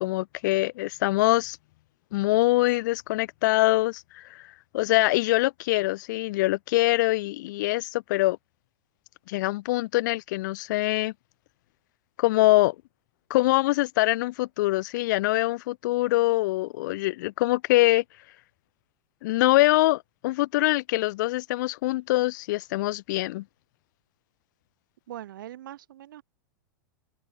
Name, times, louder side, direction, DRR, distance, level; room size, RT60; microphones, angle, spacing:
voice 1, 0.0-1.6 2.1-4.4 4.7-8.4 9.3-11.1 12.2-12.7 13.3-18.0 19.2-23.4, left 19 dB, 60° left, 0.5 m, -24 dB
voice 2, 25.1-26.2, right 12 dB, 75° right, 4.0 m, -41 dB
hypercardioid pair, 100°, 11 cm